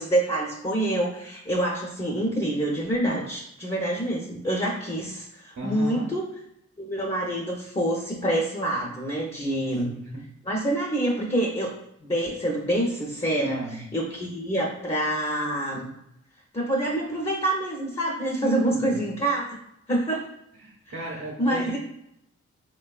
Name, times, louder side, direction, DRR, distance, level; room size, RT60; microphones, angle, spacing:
voice 1, 0.0-6.2 6.8-9.9 10.5-11.7 12.0-13.6 13.9-15.9 16.5-19.4 19.9-20.3 21.4-21.8, right 1 dB, 20° left, -3 dB, 0.8 m, -26 dB
voice 2, 5.6-6.1 9.4-10.2 13.4-13.8 18.4-19.0 20.5-21.8, right 1 dB, 50° right, -2 dB, 0.8 m, -33 dB
3.5 x 2.3 x 2.4 m, 0.81 s
cardioid pair, 50°, 29 cm